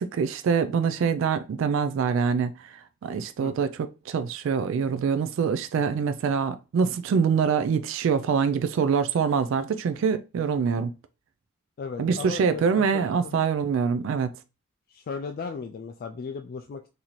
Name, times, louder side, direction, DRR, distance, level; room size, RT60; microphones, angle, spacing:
voice 1, 0.0-2.5 3.0-3.7 4.1-10.9 12.0-14.3, right 6 dB, 70° right, 0.3 m, -24 dB
voice 2, 11.8-13.4 14.9-16.9, left 5 dB, 45° left, 0.3 m, -36 dB
4.0 x 2.7 x 3.0 m
head